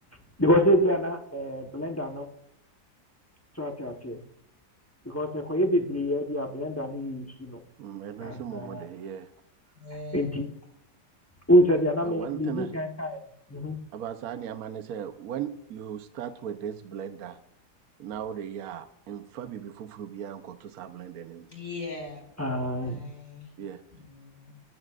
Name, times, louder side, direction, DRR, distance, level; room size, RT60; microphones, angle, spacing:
voice 1, 0.4-2.3 3.6-4.2 5.0-7.6 8.2-8.8 10.1-10.5 11.5-13.2 13.5-13.8 22.4-23.0, equal, 10° left, 2 dB, 0.9 m, -26 dB
voice 2, 7.8-9.3 12.0-12.7 13.9-17.4 18.0-21.5 23.6-23.8, right 9 dB, 65° right, 9 dB, 1.2 m, -37 dB
voice 3, 9.7-10.5 21.5-22.2 22.8-23.5 23.9-24.5, left 3 dB, 70° left, -2 dB, 5.5 m, -40 dB
14.5 x 14.0 x 2.5 m, 0.77 s
omnidirectional pair, 1.7 m